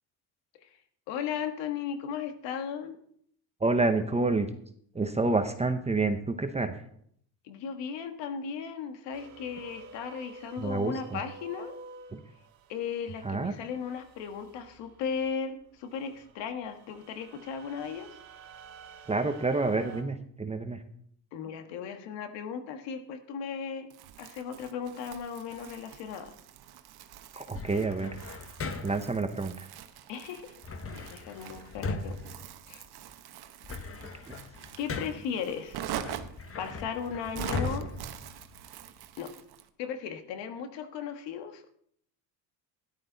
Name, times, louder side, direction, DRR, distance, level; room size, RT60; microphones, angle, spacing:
voice 1, 1.1-3.0 7.4-11.8 12.7-18.1 21.3-23.9 24.2-26.3 30.1-30.6 30.9-32.2 32.7-32.8 34.8-35.9 36.6-37.9 39.2-39.3 39.8-41.8, left 7 dB, 85° left, 7 dB, 1.7 m, -36 dB
voice 2, 3.6-4.5 4.9-6.8 10.6-11.2 12.1-12.2 13.2-13.5 19.1-20.8 27.3-28.1 28.8-29.7 34.3-34.4, right 3 dB, 15° right, 7 dB, 0.9 m, -28 dB
sound 1, 9.1-15.3 15.8-20.0, right 4 dB, 75° right, 1.8 m, -50 dB
Crumpling crinkling, 23.9-39.7, right 10 dB, 60° right, 1.1 m, -44 dB
sound 2, 27.5-29.2 30.6-33.1 33.5-35.4 35.9-39.0, left 3 dB, 30° left, 1.2 m, -38 dB
13.5 x 11.5 x 4.0 m, 0.66 s
cardioid pair, 110°, 42 cm